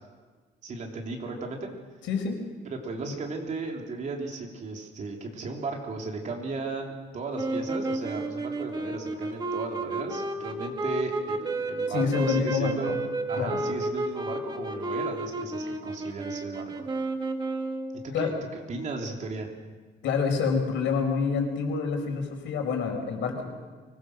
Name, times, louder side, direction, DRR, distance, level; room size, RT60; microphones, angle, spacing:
voice 1, 0.6-1.7 2.6-12.9 13.3-16.9 18.0-18.3 18.7-19.5, right 3 dB, 40° right, 1 dB, 3.2 m, -35 dB
voice 2, 2.0-2.4 11.9-13.0 13.4-13.6 18.1-18.3 20.0-23.4, left 5 dB, 85° left, 3 dB, 5.0 m, -27 dB
sound 1, 7.3-18.1, right 2 dB, 20° right, 1.7 m, -32 dB
24.0 x 21.0 x 6.5 m, 1.4 s
cardioid pair, 175°, 19 cm